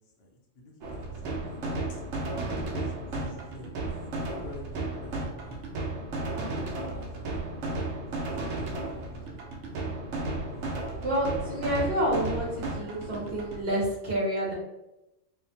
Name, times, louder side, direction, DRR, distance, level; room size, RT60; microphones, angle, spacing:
voice 1, 0.0-2.0 2.5-3.7 4.2-5.6 6.7-9.5 10.5-10.9 11.5-11.7, left 1 dB, 65° left, -1 dB, 0.8 m, -48 dB
sound 1, 0.8-13.6, right 2 dB, 80° right, 0.9 m, -34 dB
voice 2, 11.0-14.5, right 1 dB, 55° right, -5 dB, 1.0 m, -29 dB
2.7 x 2.1 x 2.8 m, 0.91 s
omnidirectional pair, 1.2 m